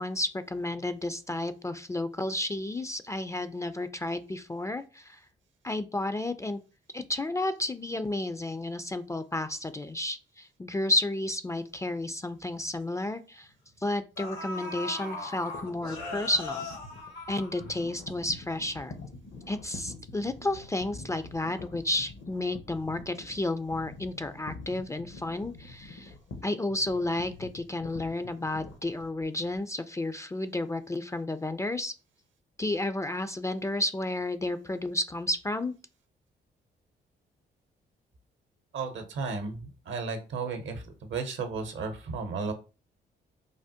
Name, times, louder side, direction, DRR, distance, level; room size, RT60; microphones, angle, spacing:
voice 1, 0.0-5.2 5.6-6.6 6.9-13.5 13.8-16.7 17.3-18.9 19.5-26.1 26.4-31.9 32.6-35.7, left 2 dB, 15° left, 10 dB, 0.3 m, -32 dB
sound 1, 12.6-12.7 13.7-13.8 14.2-18.1 18.4-18.5, left 2 dB, 90° left, 1.6 m, -39 dB
sound 2, 15.5-29.6, left 3 dB, 65° left, 0.8 m, -46 dB
voice 2, 38.7-42.5, right 4 dB, 65° right, 7 dB, 0.7 m, -34 dB
3.3 x 2.1 x 2.7 m, 0.33 s
hypercardioid pair, 50°, 21 cm